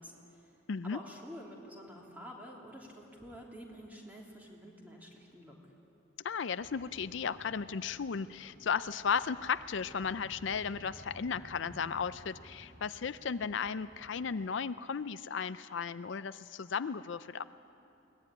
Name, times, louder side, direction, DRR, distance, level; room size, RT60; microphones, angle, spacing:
voice 1, 0.0-0.6 0.8-5.6, equal, 10° right, -1 dB, 3.1 m, -49 dB
voice 2, 0.7-1.0 6.2-17.4, left 6 dB, 65° left, 13 dB, 0.5 m, -35 dB
sound 1, 6.6-14.4, equal, 25° left, 2.9 m, -56 dB
22.5 x 18.5 x 10.0 m, 3.0 s
head